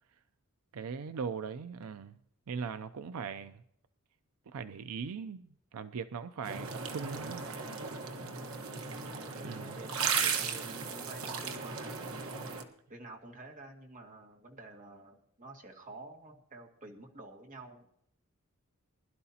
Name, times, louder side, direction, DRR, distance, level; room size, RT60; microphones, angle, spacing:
voice 1, 0.7-2.2 2.5-3.6 4.5-7.4 9.4-9.8, right 6 dB, 85° right, 11 dB, 0.5 m, -40 dB
sound 1, 6.4-12.6, right 5 dB, 70° right, 1.3 m, -36 dB
voice 2, 9.0-12.1 12.9-17.9, right 2 dB, 35° right, 1 dB, 2.0 m, -50 dB
21.0 x 12.0 x 2.8 m, 0.74 s
head